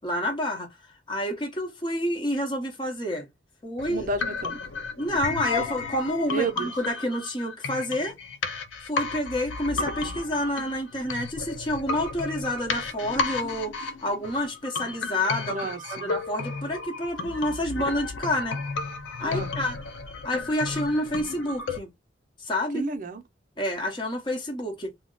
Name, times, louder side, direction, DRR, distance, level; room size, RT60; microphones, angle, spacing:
voice 1, 0.0-0.7 1.1-3.3 3.6-4.1 5.0-8.1 8.9-15.7 16.0-18.6 19.2-19.8 20.2-21.9 22.4-22.9 23.6-24.9, left 1 dB, 25° left, 0.8 m, -29 dB
sound 1, 3.8-21.8, left 4 dB, 80° left, 0.5 m, -33 dB
voice 2, 3.9-4.6 6.3-6.7 15.5-16.2 19.2-19.5 22.7-23.2, right 3 dB, 45° right, 0.5 m, -31 dB
2.3 x 2.1 x 3.7 m
head